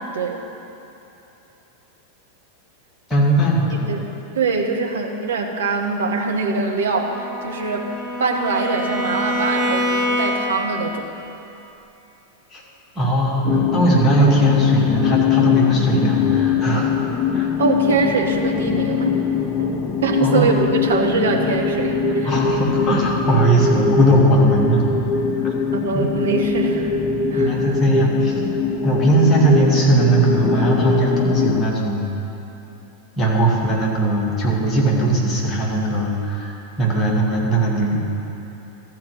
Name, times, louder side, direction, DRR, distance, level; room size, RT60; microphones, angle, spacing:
voice 1, 3.1-3.9 12.5-12.6 13.0-16.8 17.3-17.5 20.2-20.5 22.2-24.8 25.4-25.5 25.9-26.1 27.4-28.4 28.8-32.0 33.2-38.0, right 1 dB, 15° left, -5 dB, 2.4 m, -19 dB
voice 2, 4.3-7.9 8.2-11.1 17.6-22.3 25.7-27.0 27.3-27.8, right 4 dB, 65° right, 1 dB, 1.1 m, -23 dB
Bowed string instrument, 6.9-10.7, left 1 dB, 5° right, 1.8 m, -25 dB
sound 1, 13.4-31.6, left 6 dB, 30° left, 0.6 m, -22 dB
13.5 x 4.5 x 8.7 m, 3.0 s
figure-of-eight pair, 90°, 0 cm